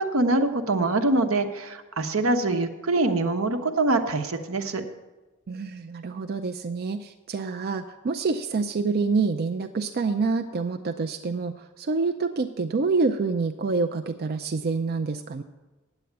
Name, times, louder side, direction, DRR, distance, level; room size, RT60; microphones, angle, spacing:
voice 1, 0.0-4.8, right 2 dB, 80° right, 6 dB, 1.0 m, -24 dB
voice 2, 5.5-15.4, right 4 dB, 50° right, 7 dB, 0.4 m, -27 dB
9.0 x 8.5 x 8.1 m, 1.2 s
head